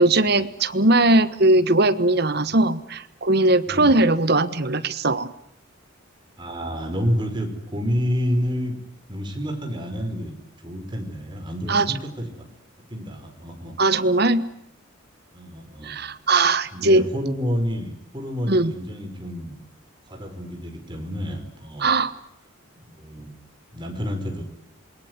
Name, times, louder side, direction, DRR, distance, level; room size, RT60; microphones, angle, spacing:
voice 1, 0.0-5.3 11.7-11.9 13.8-14.5 15.8-17.1 18.5-18.7 21.8-22.1, right 2 dB, 50° right, 13 dB, 1.3 m, -19 dB
voice 2, 3.7-4.0 6.4-8.8 9.1-12.5 12.9-13.8 15.3-16.0 16.7-19.6 20.1-21.9 22.9-23.3 23.7-24.4, equal, 25° right, 4 dB, 5.1 m, -29 dB
27.5 x 22.5 x 9.7 m, 0.71 s
head